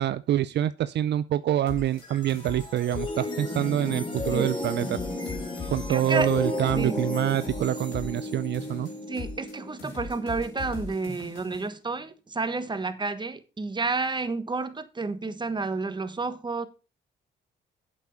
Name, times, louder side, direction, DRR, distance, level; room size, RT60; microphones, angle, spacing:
voice 1, 0.0-5.0 5.7-8.9, right 12 dB, 60° right, 0.5 m, -26 dB
sound 1, 1.7-3.3 3.5-4.5 4.8-8.3 8.5-9.5 9.8-11.7, left 4 dB, 80° left, 4.1 m, -40 dB
sound 2, 1.8-11.0, left 1 dB, 25° left, 3.5 m, -33 dB
voice 2, 5.6-6.3 6.7-7.0 9.1-16.7, right 3 dB, 20° right, 1.3 m, -30 dB
8.2 x 7.3 x 5.3 m
cardioid pair, 90°, 20 cm